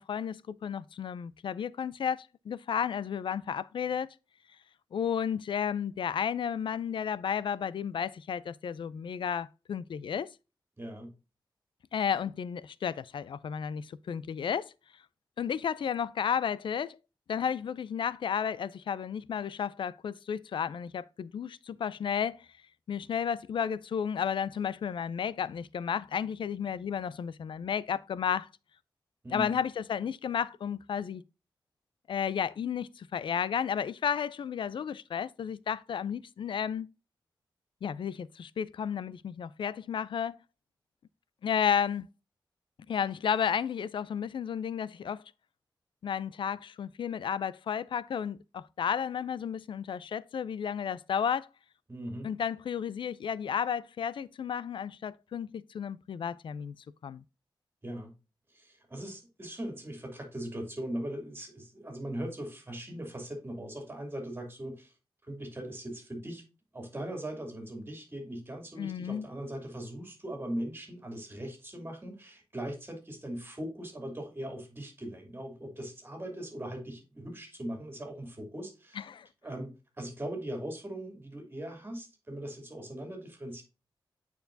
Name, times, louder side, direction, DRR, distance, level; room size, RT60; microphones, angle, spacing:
voice 1, 0.0-4.1 4.9-10.3 11.9-14.7 15.4-17.0 17.3-22.5 22.9-28.5 29.3-31.2 32.1-36.9 37.8-40.4 41.4-42.1 42.9-45.2 46.0-51.5 52.2-56.7 57.0-57.2 68.8-69.3 79.0-79.3, left 7 dB, 75° left, 0.4 m, -32 dB
voice 2, 10.8-11.1 29.2-29.5 51.9-52.3 57.8-58.1 58.5-64.9 65.2-66.4 66.7-79.0 79.4-83.6, right 1 dB, 25° right, 2.8 m, -40 dB
9.0 x 4.6 x 2.6 m
wide cardioid pair, 105°, 9 cm